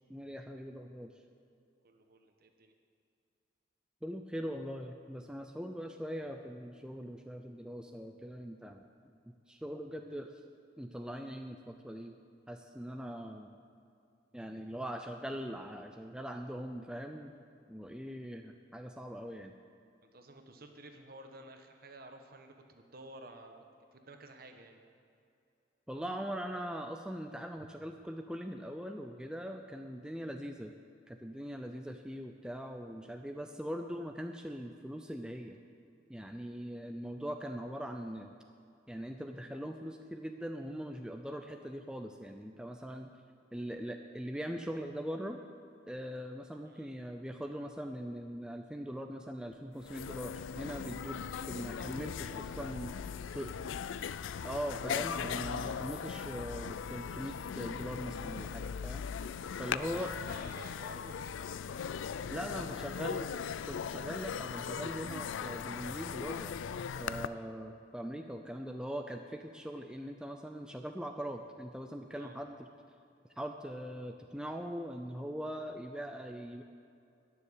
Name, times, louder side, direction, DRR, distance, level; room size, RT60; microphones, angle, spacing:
voice 1, 0.1-1.1 4.0-8.9 9.5-10.3 10.8-12.1 12.5-13.6 14.3-17.3 17.7-19.5 25.9-30.7 31.1-35.6 36.1-38.3 38.9-43.1 43.5-45.4 45.9-51.2 51.5-52.9 53.3-53.5 54.4-59.0 59.6-60.1 62.3-63.3 63.6-66.5 67.0-72.5 73.4-76.6, equal, 5° right, 4 dB, 0.5 m, -41 dB
voice 2, 1.8-2.7 20.1-23.6 23.9-24.8 27.6-27.7 46.6-46.9 53.2-53.7 59.9-61.5 62.1-62.4 62.7-62.8 72.1-72.4, right 2 dB, 50° right, 5 dB, 1.2 m, -53 dB
sound 1, 49.5-49.6 49.8-67.3, left 7 dB, 85° left, 0.4 m, -39 dB
12.0 x 7.0 x 9.9 m, 2.5 s
head